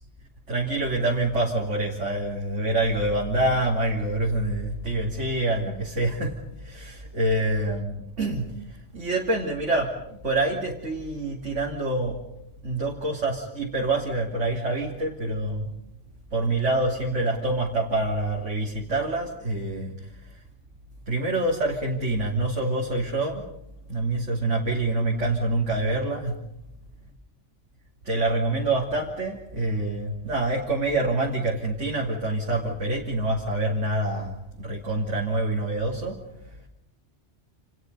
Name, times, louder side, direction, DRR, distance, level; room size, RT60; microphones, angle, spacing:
voice 1, 0.5-12.2 12.6-15.7 16.3-20.4 21.1-23.5 23.9-26.4 28.0-36.2 36.5-36.7, right 2 dB, 85° right, -2 dB, 3.3 m, -26 dB
29.5 x 29.0 x 5.4 m, 0.81 s
omnidirectional pair, 1.2 m